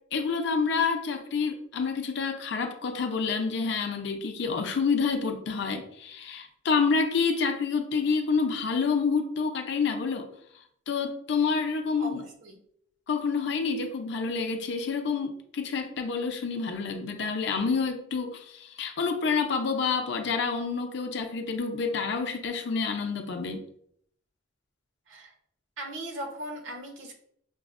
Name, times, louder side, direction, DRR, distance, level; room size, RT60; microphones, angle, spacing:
voice 1, 0.1-10.3 10.9-12.2 13.1-23.6, left 5 dB, 60° left, 5 dB, 0.5 m, -28 dB
voice 2, 12.0-12.6 25.1-25.3 25.8-27.1, right 1 dB, 75° right, 1 dB, 0.9 m, -38 dB
5.9 x 2.0 x 2.4 m, 0.68 s
head